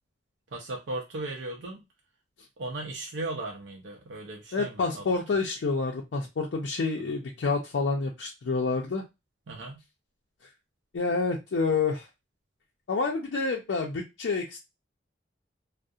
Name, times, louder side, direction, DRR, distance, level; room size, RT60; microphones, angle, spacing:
voice 1, 0.5-1.8 2.6-5.1 7.1-7.2 9.5-9.8, right 2 dB, 90° right, 0 dB, 0.5 m, -37 dB
voice 2, 4.5-9.0 10.9-12.1 12.9-14.6, left 4 dB, 80° left, 0 dB, 0.4 m, -28 dB
2.3 x 2.0 x 2.6 m, 0.23 s
head